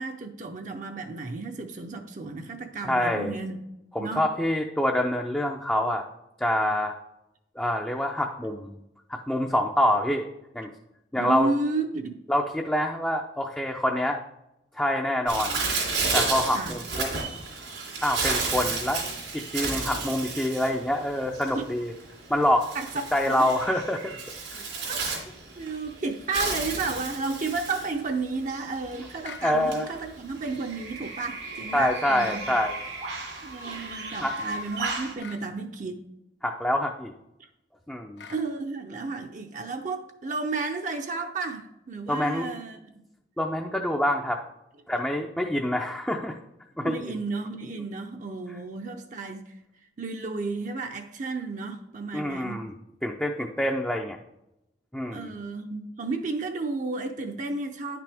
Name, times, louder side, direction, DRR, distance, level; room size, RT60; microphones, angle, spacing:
voice 1, 0.0-3.6 4.0-4.2 11.1-12.2 16.5-16.8 21.5-21.6 22.7-22.9 23.3-23.5 24.9-25.0 25.6-32.4 33.4-36.0 38.3-43.0 46.8-49.5 50.0-52.6 55.1-58.0, right 3 dB, 45° right, 4 dB, 0.6 m, -32 dB
voice 2, 2.8-3.4 3.9-6.0 6.4-6.9 7.6-8.7 9.1-10.3 10.5-10.7 11.1-11.5 12.3-14.2 14.7-15.6 16.1-17.1 18.0-19.0 19.3-21.9 22.3-22.7 23.1-24.2 24.5-24.6 29.4-29.9 31.7-32.8 34.2-34.3 36.4-37.1 37.9-38.2 42.1-42.5 43.4-44.4 44.9-46.4 46.8-47.2 52.1-52.7 53.0-54.2 54.9-55.3, left 1 dB, 5° left, 1 dB, 0.4 m, -26 dB
Bird, 15.3-35.1, right 3 dB, 85° right, 2.8 m, -33 dB
sound 1, 29.2-29.5 32.2-32.5 35.2-35.5 38.2-38.5, left 5 dB, 75° left, 0.8 m, -43 dB
9.8 x 5.9 x 3.4 m, 0.88 s
head